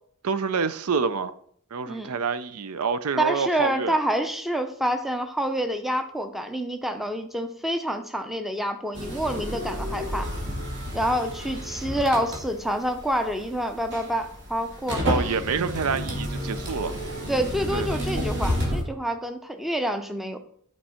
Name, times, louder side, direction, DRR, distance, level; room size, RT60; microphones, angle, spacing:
voice 1, 0.2-1.3 1.7-4.0 15.0-17.0 17.7-18.0, right 5 dB, 80° right, 0.5 m, -27 dB
voice 2, 3.2-10.3 10.9-15.1 17.3-20.4, equal, ahead, 0.6 m, -27 dB
sound 1, 8.9-18.8, equal, 50° right, 2.3 m, -31 dB
11.5 x 4.6 x 4.3 m
head